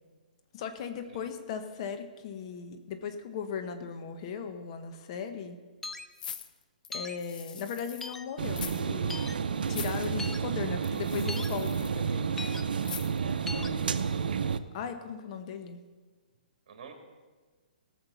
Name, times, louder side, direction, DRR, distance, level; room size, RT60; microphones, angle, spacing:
voice 1, 0.5-5.6 6.9-9.2 9.7-12.3 13.5-14.1 14.7-15.8, left 7 dB, 40° left, 7 dB, 1.1 m, -38 dB
sound 1, 5.8-6.1 6.9-7.2 8.0-8.2 9.1-9.3 10.2-10.4 11.3-11.5 12.4-12.6 13.5-13.7, left 3 dB, 5° left, 0.5 m, -38 dB
sound 2, 6.2-8.1 8.5-8.8 9.1-9.2 9.6-10.1 10.8-12.0 12.8-13.3 13.8-13.9, left 7 dB, 65° left, 0.8 m, -43 dB
sound 3, 8.4-14.6, right 6 dB, 75° right, 0.7 m, -31 dB
voice 2, 13.5-14.0 16.7-16.9, right 6 dB, 50° right, 4 dB, 2.5 m, -49 dB
18.0 x 6.6 x 5.8 m, 1.4 s
hypercardioid pair, 145°, 5 cm